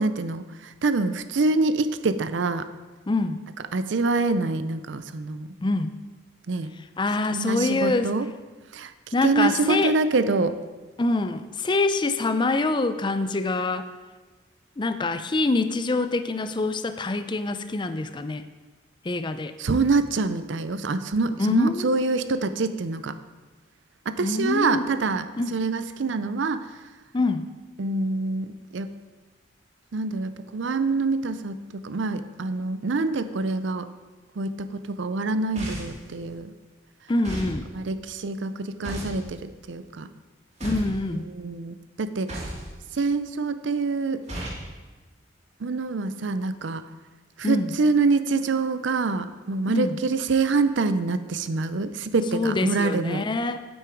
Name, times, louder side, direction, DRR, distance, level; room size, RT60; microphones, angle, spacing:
voice 1, 0.0-2.7 3.7-5.5 6.5-6.7 7.3-8.3 8.7-8.9 9.2-10.6 19.6-23.2 24.1-26.7 27.8-28.9 29.9-33.9 34.4-36.5 37.7-40.1 41.1-42.4 42.9-44.2 45.6-46.9 47.4-53.3, right 3 dB, 70° right, 12 dB, 0.5 m, -26 dB
voice 2, 3.1-3.4 5.6-5.9 7.0-8.1 9.1-10.0 11.0-13.8 14.8-18.5 19.0-19.5 21.4-21.9 24.2-24.9 25.4-25.5 27.1-27.5 37.1-37.7 40.6-41.3 47.4-47.7 49.7-50.0 52.3-53.6, left 2 dB, 25° left, 10 dB, 0.4 m, -25 dB
sound 1, 35.5-36.0 37.2-37.6 38.8-39.2 40.6-41.0 42.3-42.7 44.3-44.6, right 1 dB, 35° right, 2.6 m, -33 dB
9.0 x 8.6 x 4.6 m, 1.3 s
head